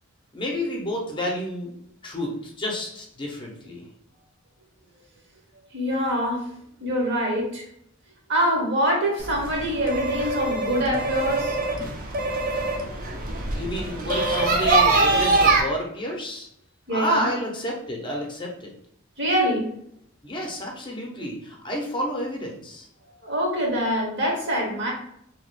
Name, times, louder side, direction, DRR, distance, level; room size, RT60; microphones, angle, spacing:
voice 1, 0.3-1.7 2.0-3.8 13.5-16.5 16.9-18.7 20.2-22.9, equal, 25° left, 0 dB, 0.5 m, -30 dB
voice 2, 5.7-6.4 6.8-7.6 8.3-11.6 16.9-17.3 19.2-19.6 23.2-24.9, equal, 55° right, -1 dB, 1.0 m, -24 dB
sound 1, 9.2-15.6, right 3 dB, 40° right, 0.5 m, -23 dB
2.8 x 2.3 x 3.1 m, 0.72 s
head